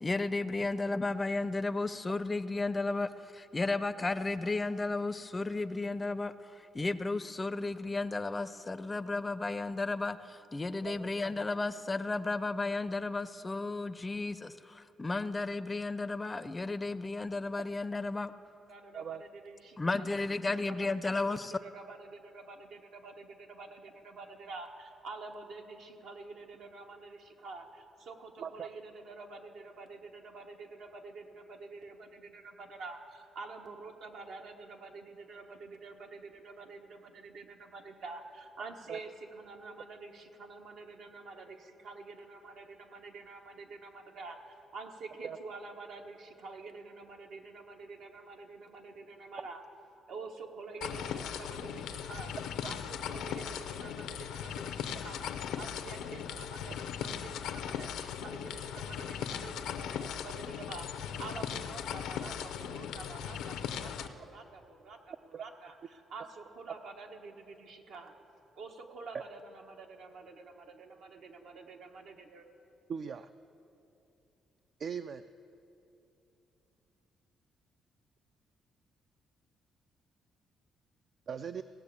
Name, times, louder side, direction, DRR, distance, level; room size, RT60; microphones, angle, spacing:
voice 1, 0.0-18.3 19.8-21.5, left 3 dB, 25° left, 14 dB, 0.4 m, -33 dB
voice 2, 18.7-49.6 50.1-52.4 52.6-68.1 68.6-72.5, right 3 dB, 75° right, 3 dB, 1.2 m, -48 dB
sound 1, 50.8-64.1, left 8 dB, 90° left, 0.6 m, -38 dB
voice 3, 72.9-73.3 74.8-75.2 81.3-81.6, right 7 dB, 55° right, 11 dB, 0.3 m, -39 dB
17.0 x 6.8 x 8.4 m, 3.0 s
cardioid pair, 90°, 0 cm